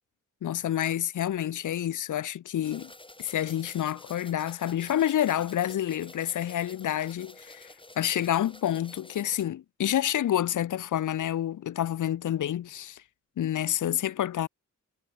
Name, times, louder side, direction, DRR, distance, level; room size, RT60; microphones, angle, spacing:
voice 1, 0.4-2.9 3.2-7.7 8.0-13.0 13.4-14.5, left 11 dB, 80° left, 0.6 m, -28 dB
sound 1, 2.6-9.4, left 2 dB, 15° left, 4.1 m, -50 dB
wide cardioid pair, 120°, 30 cm